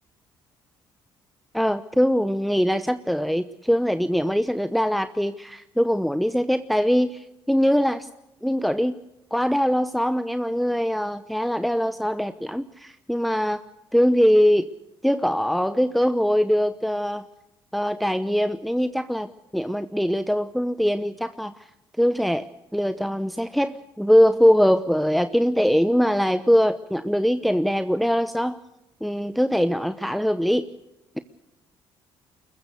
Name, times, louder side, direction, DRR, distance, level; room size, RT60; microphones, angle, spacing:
voice 1, 1.5-8.1 8.4-9.0 9.3-13.6 13.9-14.7 15.0-17.3 17.7-21.5 22.0-22.5 22.7-28.6 29.0-30.7, equal, ahead, 12 dB, 0.9 m, -22 dB
23.0 x 21.0 x 6.6 m, 0.94 s
supercardioid pair, 65°, 11 cm